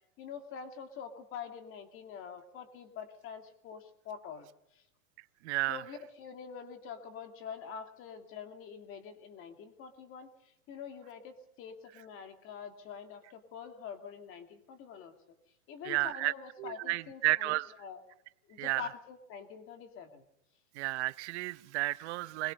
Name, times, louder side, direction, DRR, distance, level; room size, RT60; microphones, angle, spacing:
voice 1, 0.2-4.9 5.7-15.1 15.7-18.0 18.5-20.2, left 7 dB, 30° left, 2.6 m, -46 dB
voice 2, 5.4-5.8 15.8-16.3 16.6-17.7 18.6-18.9 20.7-22.5, right 20 dB, 50° right, 0.8 m, -32 dB
23.0 x 22.5 x 5.4 m
supercardioid pair, 160°, 44 cm